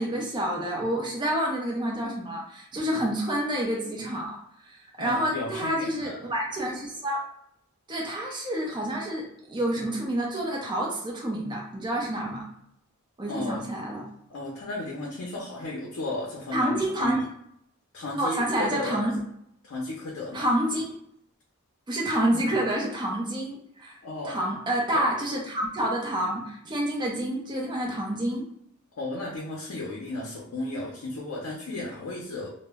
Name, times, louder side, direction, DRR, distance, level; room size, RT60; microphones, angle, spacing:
voice 1, 0.0-4.4 4.6-7.2 7.9-12.4 13.2-14.0 16.5-17.2 18.2-19.2 20.3-21.0 21.9-24.0 24.2-28.4, right 1 dB, 20° right, -2 dB, 0.5 m, -28 dB
voice 2, 5.0-6.3 13.3-13.6 14.3-17.2 17.9-19.0 19.6-20.5 24.0-24.4 24.9-25.0 29.0-32.5, left 2 dB, 65° left, -3 dB, 0.5 m, -34 dB
2.1 x 2.0 x 3.4 m, 0.71 s
head